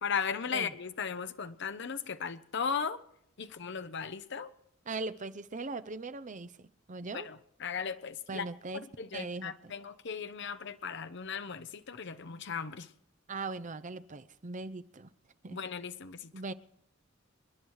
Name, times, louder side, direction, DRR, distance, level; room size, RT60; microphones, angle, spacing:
voice 1, 0.0-3.0 3.4-4.5 7.1-8.5 9.0-12.9 15.5-16.3, left 6 dB, 65° left, 0.8 m, -37 dB
voice 2, 4.9-7.3 8.3-8.8 9.1-9.7 13.3-15.1 15.4-15.6 16.3-16.5, right 3 dB, 40° right, 0.7 m, -40 dB
28.5 x 10.5 x 4.8 m
head